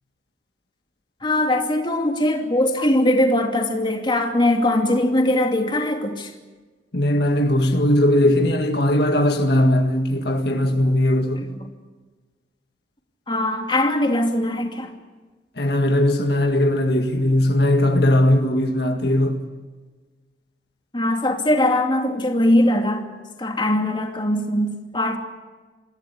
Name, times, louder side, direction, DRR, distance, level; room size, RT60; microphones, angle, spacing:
voice 1, 1.2-6.3 11.4-11.5 13.3-14.9 20.9-23.1 23.4-25.2, left 1 dB, 25° left, 2.6 m, -21 dB
voice 2, 6.9-11.5 15.6-19.4, left 1 dB, 60° left, 2.0 m, -19 dB
26.0 x 16.0 x 8.4 m
head